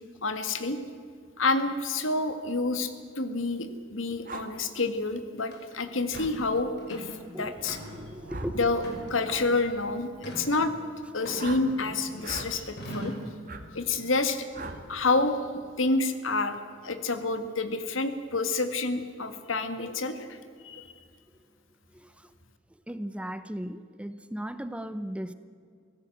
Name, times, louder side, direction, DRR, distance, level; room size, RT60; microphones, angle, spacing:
voice 1, 0.2-0.8 1.4-2.9 3.2-7.8 8.6-8.8 9.1-10.1 10.4-10.7 11.1-13.1 13.7-14.5 14.9-15.4 15.8-16.6 16.8-20.4 20.6-20.9, left 3 dB, 75° left, 9 dB, 1.9 m, -28 dB
sound 1, 4.2-4.5 6.1-6.3 8.3-8.6 9.2-9.5 11.4-11.6 12.2-12.5 13.5-13.6 14.5-14.8, right 3 dB, 45° right, 1.9 m, -39 dB
sound 2, 5.5-5.6 6.1-6.4 6.8-7.2 7.6-8.1 8.8-9.4 10.2-10.5 11.2-12.1 12.8-13.3, equal, 55° left, 5.7 m, -40 dB
voice 2, 7.2-7.6 7.9-8.7 9.7-9.9 21.9-22.3 22.9-25.3, equal, 5° right, 12 dB, 0.7 m, -37 dB
sound 3, 7.5-11.4, equal, 75° right, 2.1 m, -48 dB
24.0 x 16.5 x 7.9 m, 2.3 s
head